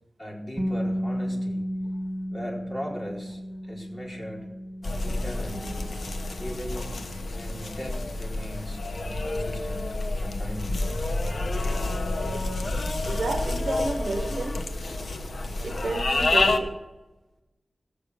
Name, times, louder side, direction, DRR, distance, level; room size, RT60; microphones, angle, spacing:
voice 1, 0.2-1.6 2.3-3.4 3.7-4.5 5.0-5.8 6.4-6.9 7.3-10.9, equal, 20° left, 4.2 m, -38 dB
sound 1, 0.6-12.4, equal, 10° right, 2.1 m, -35 dB
sound 2, 4.8-16.6, left 2 dB, 65° left, 1.0 m, -29 dB
voice 2, 13.0-14.6 15.6-16.8, right 3 dB, 70° right, 1.0 m, -31 dB
18.0 x 6.7 x 6.5 m
wide cardioid pair, 80°, 0 cm